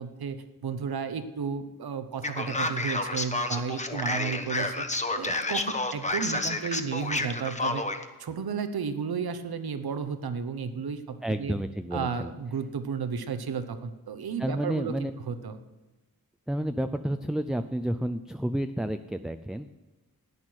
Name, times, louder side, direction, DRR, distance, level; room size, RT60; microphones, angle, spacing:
voice 1, 0.0-4.9 5.2-7.8 8.2-11.6 11.9-15.6, right 6 dB, 85° right, 10 dB, 1.0 m, -33 dB
Male speech man speaking, 2.2-8.0, left 2 dB, 20° left, 1.0 m, -30 dB
voice 2, 11.2-12.3 14.4-15.1 16.5-19.8, right 1 dB, ahead, 8 dB, 0.4 m, -30 dB
13.0 x 9.2 x 6.3 m, 1.1 s
wide cardioid pair, 85°, 36 cm